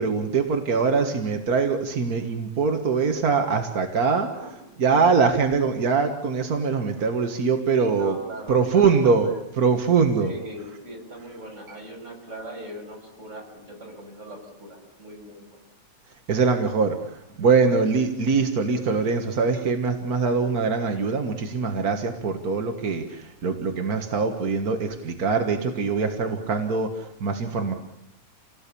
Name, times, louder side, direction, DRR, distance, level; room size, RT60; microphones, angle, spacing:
voice 1, 0.0-4.4 4.8-8.1 8.5-10.3 16.3-27.7, right 5 dB, 40° right, 5 dB, 1.4 m, -23 dB
voice 2, 4.9-5.2 7.8-9.4 10.2-15.6 17.7-17.8, right 1 dB, 20° right, 0 dB, 6.6 m, -40 dB
28.0 x 18.5 x 8.5 m, 0.86 s
omnidirectional pair, 3.4 m